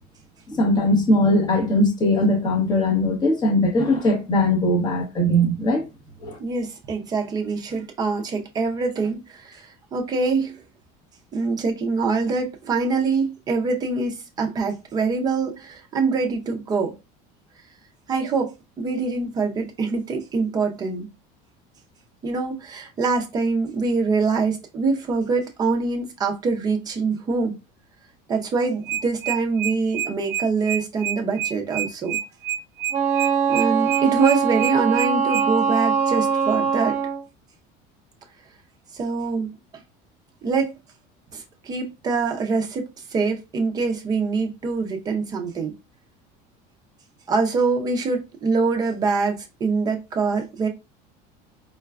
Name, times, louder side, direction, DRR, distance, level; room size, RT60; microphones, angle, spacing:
voice 1, 0.5-5.8 6.2-6.4, left 1 dB, 20° left, 0.9 m, -20 dB
voice 2, 6.4-10.6 11.3-16.9 18.1-18.5 18.8-21.1 22.2-27.6 28.3-32.2 33.5-37.0 38.9-39.5 40.4-40.7 41.3-42.8 43.1-45.7 47.3-50.7, right 4 dB, 20° right, 0.5 m, -24 dB
sound 1, 28.9-35.5, right 11 dB, 80° right, 0.5 m, -27 dB
Wind instrument woodwind instrument, 32.9-37.2, right 7 dB, 35° right, 0.9 m, -22 dB
4.6 x 2.2 x 2.3 m
cardioid pair, 180°, 20 cm